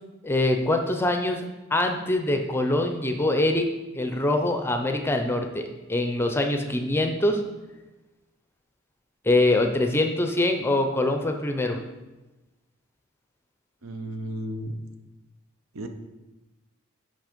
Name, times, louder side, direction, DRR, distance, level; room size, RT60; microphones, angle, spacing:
voice 1, 0.2-3.7 3.9-7.4 9.2-11.8, left 2 dB, 10° left, 5 dB, 0.5 m, -24 dB
voice 2, 13.8-14.7 15.7-15.9, right 1 dB, 80° right, 6 dB, 0.8 m, -33 dB
6.2 x 5.6 x 5.1 m, 1.1 s
head